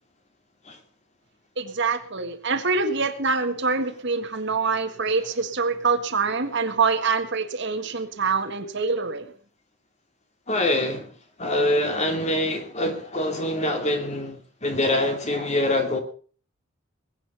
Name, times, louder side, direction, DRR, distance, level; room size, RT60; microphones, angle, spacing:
voice 1, 1.6-9.3, right 4 dB, 55° right, 1.8 m, -25 dB
voice 2, 10.5-11.1 11.4-16.0, left 1 dB, 35° left, 2.8 m, -25 dB
21.0 x 8.9 x 5.7 m
head